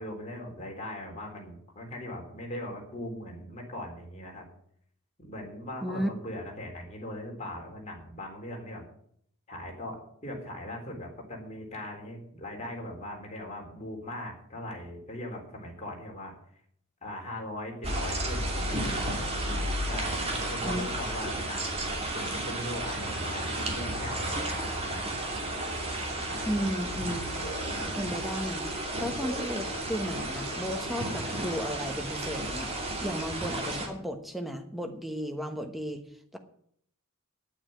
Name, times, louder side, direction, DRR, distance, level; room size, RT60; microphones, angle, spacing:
voice 1, 0.0-4.5 5.2-8.9 9.5-16.3 17.0-19.1 19.9-25.1 26.3-26.7, left 1 dB, 30° left, 0 dB, 3.8 m, -40 dB
sound 1, 17.8-33.9, right 1 dB, 30° right, 2.7 m, -33 dB
voice 2, 26.4-27.2 28.0-28.6 29.0-36.0 36.3-36.4, equal, ahead, 5 dB, 1.2 m, -34 dB
sound 2, 27.3-28.2 29.1-30.2 31.1-32.1, right 1 dB, 45° left, 4.3 m, -43 dB
9.8 x 8.6 x 8.9 m, 0.66 s
head